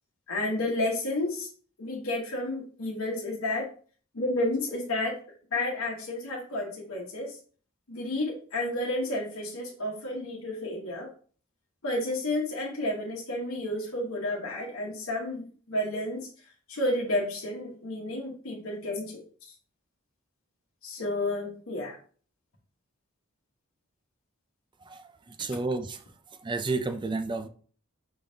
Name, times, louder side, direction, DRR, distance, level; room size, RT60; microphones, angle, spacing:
voice 1, 0.3-1.5 1.8-3.7 4.1-5.2 5.5-7.4 7.9-11.1 11.8-16.3 16.7-19.2 20.8-22.0, left 1 dB, 75° left, 1.1 m, -31 dB
voice 2, 24.8-26.0 26.4-27.5, right 3 dB, 20° right, 0.4 m, -31 dB
5.5 x 3.4 x 2.7 m
head